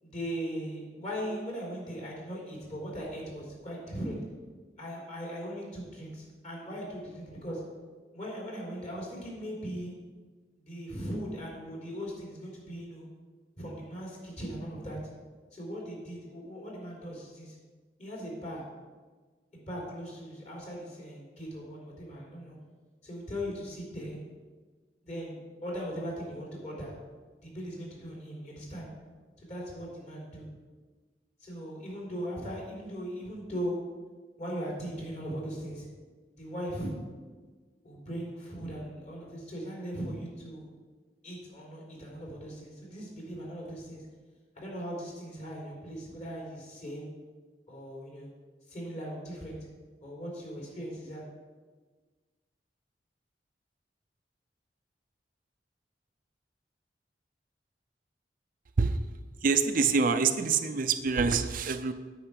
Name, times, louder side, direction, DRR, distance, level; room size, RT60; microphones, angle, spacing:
voice 1, 0.0-4.2 4.8-7.6 8.1-9.9 10.6-13.1 13.6-15.0 15.5-17.5 18.0-18.7 19.5-22.6 23.0-24.2 25.0-26.9 27.4-28.9 29.4-30.5 31.4-33.8 34.4-35.9 36.4-36.9 37.8-40.7 41.2-44.1 44.6-47.1 47.7-48.3 48.7-49.6 50.0-51.2, equal, 40° left, -3 dB, 3.7 m, -39 dB
voice 2, 59.4-61.9, right 5 dB, 50° right, 8 dB, 0.5 m, -26 dB
9.0 x 5.7 x 8.2 m, 1.4 s
head